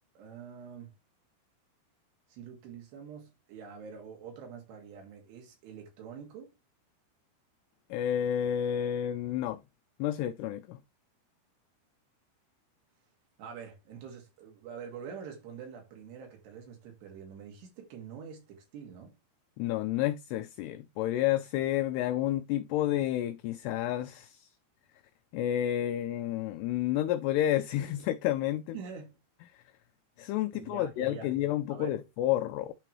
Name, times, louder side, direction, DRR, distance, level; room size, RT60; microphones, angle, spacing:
voice 1, 0.2-0.9 2.3-6.5 13.4-19.2 28.7-29.2 30.5-31.3 31.7-32.0, right 7 dB, 70° right, 3.8 m, -45 dB
voice 2, 7.9-9.6 10.0-10.8 19.6-24.5 25.3-28.8 29.5-29.6 30.2-32.7, left 12 dB, 90° left, 2.3 m, -30 dB
11.0 x 3.8 x 3.1 m
omnidirectional pair, 5.3 m